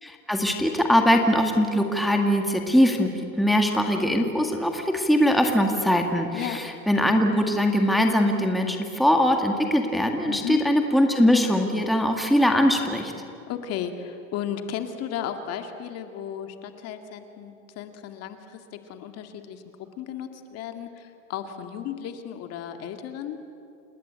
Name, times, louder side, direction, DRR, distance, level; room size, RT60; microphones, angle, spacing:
voice 1, 0.0-3.1 3.4-13.1, equal, ahead, 3 dB, 1.9 m, -21 dB
voice 2, 10.3-10.6 13.5-18.6 18.9-19.6 20.0-23.4, left 9 dB, 40° left, 7 dB, 2.0 m, -34 dB
29.0 x 19.0 x 8.7 m, 2.6 s
supercardioid pair, 135°, 40 cm